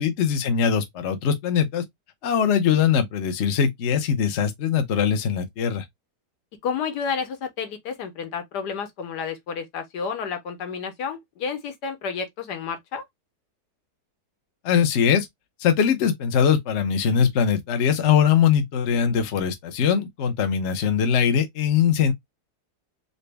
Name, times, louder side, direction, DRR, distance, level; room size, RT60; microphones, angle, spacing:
voice 1, 0.0-1.8 2.2-5.8 14.6-15.3 15.6-22.1, left 7 dB, 55° left, 0.8 m, -21 dB
voice 2, 6.6-13.0, left 6 dB, 75° left, 1.5 m, -30 dB
4.0 x 2.1 x 3.3 m
omnidirectional pair, 1.8 m